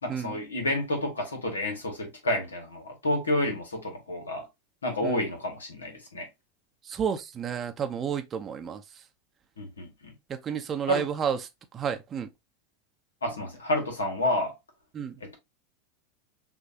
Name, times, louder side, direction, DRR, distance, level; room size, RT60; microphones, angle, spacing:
voice 1, 0.0-4.5 4.8-6.3 9.6-10.1 10.9-11.0 13.2-14.5 15.2-15.4, left 1 dB, 80° left, 1.7 m, -30 dB
voice 2, 6.8-8.8 10.3-11.4 11.7-12.3 14.9-15.1, right 8 dB, 30° right, 0.7 m, -31 dB
6.1 x 2.8 x 2.8 m
figure-of-eight pair, 85°, 0 cm